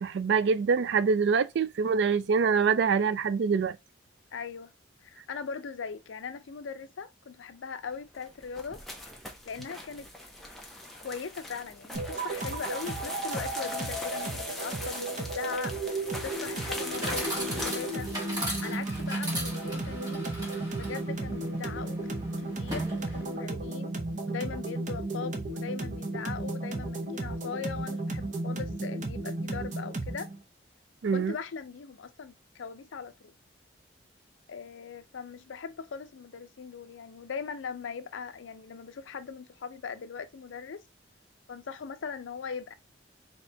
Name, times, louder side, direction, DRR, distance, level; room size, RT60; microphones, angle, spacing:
voice 1, 0.0-3.8 31.0-31.3, right 5 dB, 60° right, 0.3 m, -25 dB
voice 2, 4.3-4.7 5.0-8.8 9.4-10.1 11.0-18.1 18.6-20.4 20.7-22.0 22.4-23.9 24.3-30.3 31.1-33.3 34.5-40.8 41.5-42.7, left 6 dB, 75° left, 0.5 m, -40 dB
sound 1, 8.0-19.7, left 1 dB, ahead, 0.7 m, -41 dB
sound 2, 11.9-30.4, right 2 dB, 40° right, 0.7 m, -34 dB
Chatter / Coin (dropping), 16.5-23.5, equal, 20° right, 1.4 m, -38 dB
4.2 x 2.8 x 3.3 m
head